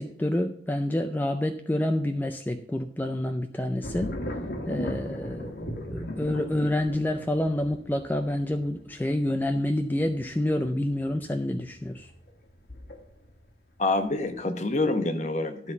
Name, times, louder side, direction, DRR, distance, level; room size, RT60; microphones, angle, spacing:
voice 1, 0.0-4.1 4.7-5.5 5.9-12.1, left 1 dB, 10° left, 6 dB, 0.4 m, -28 dB
sound 1, 3.8-13.5 13.9-14.4, equal, 60° left, 1.5 m, -37 dB
voice 2, 13.8-15.7, left 2 dB, 40° left, 8 dB, 0.9 m, -27 dB
12.0 x 4.1 x 7.0 m, 0.66 s
head